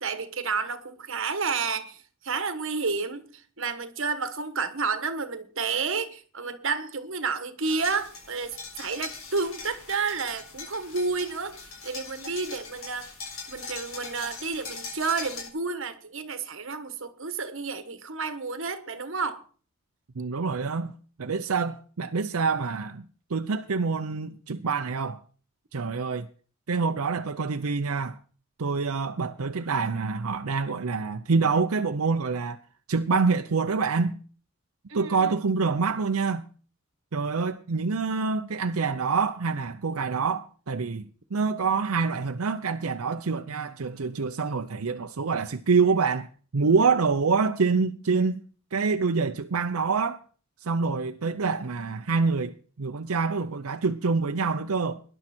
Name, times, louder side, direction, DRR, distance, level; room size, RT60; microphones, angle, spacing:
voice 1, 0.0-3.3 3.6-11.6 11.8-13.1 13.5-19.4 34.9-35.4, right 4 dB, 65° right, 1.4 m, -30 dB
sound 1, 7.6-15.5, left 4 dB, 85° left, 6.2 m, -41 dB
voice 2, 20.2-20.9 21.2-25.2 25.7-26.3 26.7-28.2 28.6-32.6 32.9-34.2 34.9-36.5 37.1-46.3 46.5-48.4 48.7-50.2 50.6-55.0, right 4 dB, 85° right, 0.7 m, -26 dB
18.5 x 11.0 x 4.4 m
head